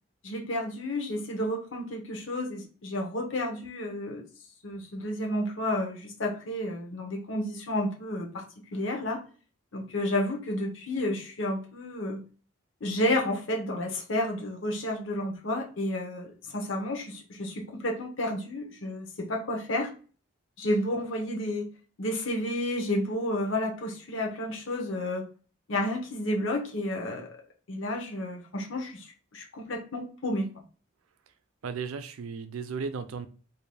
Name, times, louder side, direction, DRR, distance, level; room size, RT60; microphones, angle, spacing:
voice 1, 0.2-4.2 4.6-8.4 8.7-9.2 9.7-12.2 12.8-19.9 20.6-21.7 22.0-25.2 25.7-27.3 27.7-29.1 29.3-30.5, left 1 dB, 65° left, 1 dB, 0.7 m, -31 dB
voice 2, 31.6-33.3, right 5 dB, 80° right, 10 dB, 0.4 m, -35 dB
3.3 x 2.6 x 2.2 m, 0.37 s
head